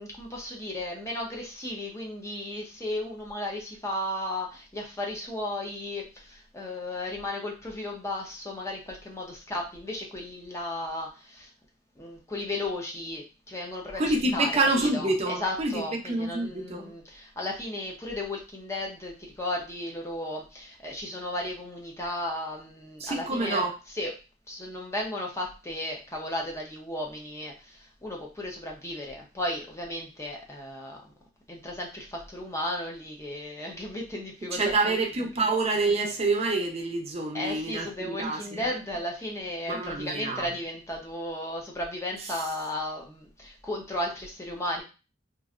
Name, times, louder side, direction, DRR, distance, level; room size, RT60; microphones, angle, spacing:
voice 1, 0.0-11.5 12.0-24.1 24.5-31.1 31.5-35.4 37.3-44.8, left 1 dB, 15° left, -1 dB, 0.6 m, -35 dB
voice 2, 14.0-15.7 16.0-16.9 23.0-23.7 34.5-38.7 39.7-40.4, right 2 dB, 35° right, 2 dB, 0.6 m, -27 dB
3.0 x 2.5 x 2.4 m, 0.31 s
head